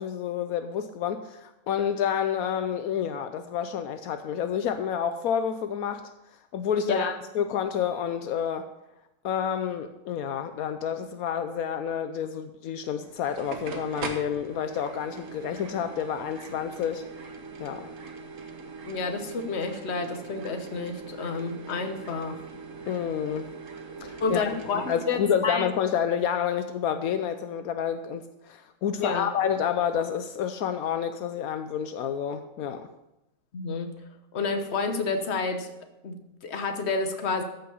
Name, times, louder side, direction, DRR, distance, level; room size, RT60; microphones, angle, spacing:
voice 1, 0.0-6.1 6.5-8.7 9.2-17.0 17.6-17.9 22.9-23.5 24.0-32.9, left 8 dB, 80° left, 9 dB, 1.1 m, -29 dB
voice 2, 6.8-7.1 18.9-22.5 24.2-25.7 29.0-29.3 33.5-33.9 34.3-35.7 36.0-37.4, left 4 dB, 50° left, 7 dB, 1.3 m, -30 dB
sound 1, 13.0-25.1, right 4 dB, 60° right, 1.6 m, -41 dB
14.0 x 5.7 x 6.9 m, 0.91 s
omnidirectional pair, 1.5 m